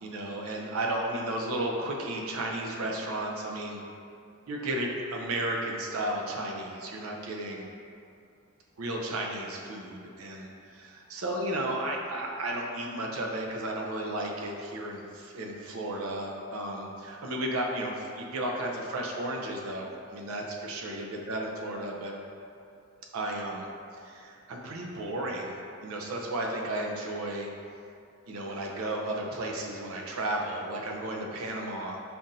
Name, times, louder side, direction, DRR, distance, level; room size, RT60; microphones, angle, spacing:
voice 1, 0.0-3.8 4.5-7.7 8.8-22.2 23.1-23.7 24.0-27.5 28.3-32.0, right 1 dB, 80° right, 0 dB, 0.5 m, -33 dB
5.6 x 2.5 x 2.6 m, 2.5 s
head